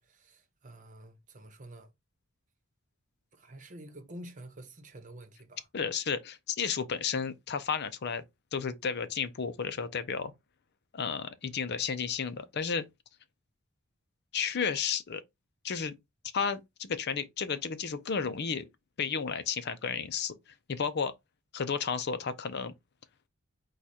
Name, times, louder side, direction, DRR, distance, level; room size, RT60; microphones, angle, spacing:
voice 1, 0.0-1.9 3.3-5.7, right 1 dB, 35° right, 1.0 m, -49 dB
voice 2, 5.7-8.2 8.5-10.3 10.9-12.9 14.3-15.2 15.6-16.0 16.3-18.6 19.0-20.3 20.7-21.1 21.5-22.7, left 6 dB, 50° left, 0.5 m, -32 dB
4.8 x 2.3 x 4.1 m
head